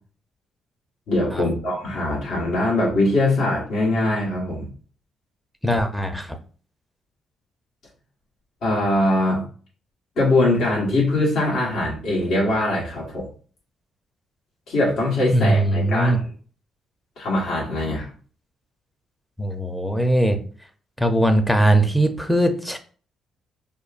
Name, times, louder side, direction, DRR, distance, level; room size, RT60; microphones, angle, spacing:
voice 1, 1.1-4.7 8.6-9.4 10.2-13.3 14.7-16.2 17.2-18.1, left 2 dB, 70° left, -4 dB, 1.5 m, -22 dB
voice 2, 5.6-6.4 15.3-16.2 19.4-20.4 21.0-22.8, right 1 dB, 5° left, 7 dB, 0.6 m, -20 dB
5.2 x 2.3 x 2.5 m, 0.41 s
cardioid pair, 90°, 0 cm